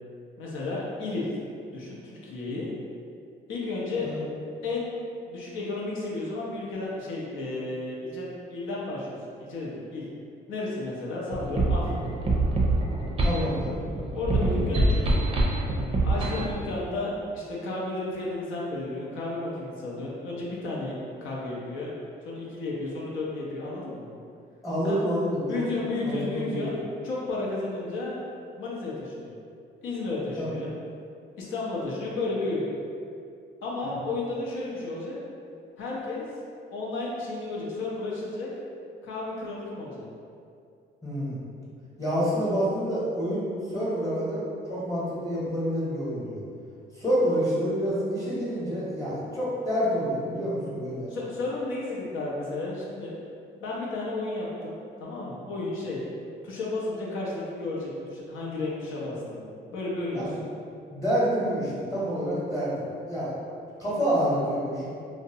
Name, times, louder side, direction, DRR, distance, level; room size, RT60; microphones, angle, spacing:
voice 1, 0.4-1.3 1.7-2.7 3.5-4.1 4.6-5.0 5.3-10.1 10.5-12.0 14.1-15.3 16.0-21.9 22.2-24.1 24.8-25.0 25.5-26.8 27.0-28.2 28.6-29.3 29.8-30.7 31.4-32.6 33.6-35.2 35.8-36.3 36.7-38.5 39.0-40.1 51.1-53.1 53.5-54.8 55.0-56.0 56.4-60.3, left 2 dB, 85° left, -5 dB, 0.6 m, -33 dB
sound 1, 11.3-16.5, right 2 dB, 30° right, 0.4 m, -24 dB
voice 2, 13.2-13.7 24.6-25.6 26.0-26.8 30.4-30.5 33.8-33.9 41.0-41.4 42.0-44.4 44.7-46.4 46.9-51.1 60.1-60.3 60.9-63.3 63.8-64.9, equal, 15° left, -9 dB, 0.9 m, -28 dB
2.6 x 2.1 x 2.6 m, 2.5 s
cardioid pair, 90°, 20 cm